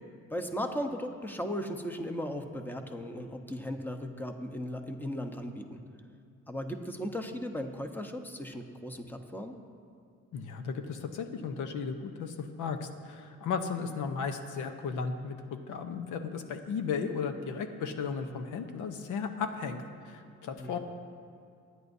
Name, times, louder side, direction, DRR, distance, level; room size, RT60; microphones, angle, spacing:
voice 1, 0.3-5.8 6.5-9.6 20.6-20.8, equal, 5° left, 5 dB, 1.0 m, -37 dB
voice 2, 10.3-15.4 15.7-20.8, left 5 dB, 85° left, 7 dB, 0.9 m, -35 dB
22.5 x 9.7 x 2.7 m, 2.4 s
cardioid pair, 90°, 30 cm